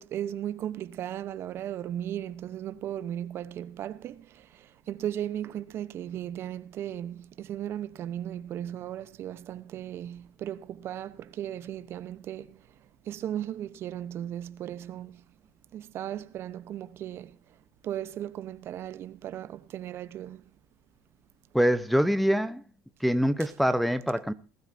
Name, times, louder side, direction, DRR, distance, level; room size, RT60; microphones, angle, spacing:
voice 1, 0.0-4.5 4.9-12.5 13.1-15.2 15.7-17.3 17.8-20.4, right 11 dB, 45° right, 0.9 m, -36 dB
voice 2, 21.5-22.6 23.0-24.3, equal, ahead, 0.9 m, -24 dB
20.0 x 13.0 x 2.7 m
cardioid pair, 130°, 6 cm